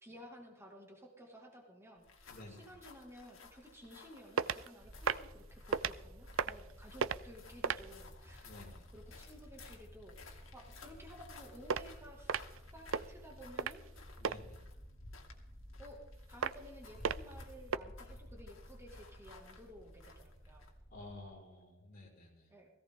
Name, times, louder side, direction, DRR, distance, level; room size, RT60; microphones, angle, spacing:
voice 1, 0.0-8.5 8.9-12.5 12.7-13.8 15.8-16.0 16.3-20.7 22.5-22.7, equal, 15° right, 0 dB, 2.2 m, -55 dB
sound 1, 2.0-20.8, left 2 dB, 80° left, 2.5 m, -56 dB
voice 2, 2.3-2.7 8.5-8.8 14.2-14.6 20.9-22.5, left 2 dB, 45° left, -1 dB, 5.4 m, -52 dB
sound 2, 4.4-4.7 5.0-5.3 5.7-6.0 6.3-6.7 7.0-7.2 7.6-7.9 11.7-11.8 12.3-12.6 12.9-13.1 13.6-13.9 14.2-14.4 16.4-16.7 17.0-17.3 17.7-17.8, right 6 dB, 75° right, 0.5 m, -33 dB
sound 3, 4.8-21.3, equal, 40° right, 2.3 m, -56 dB
17.0 x 17.0 x 3.8 m, 0.93 s
head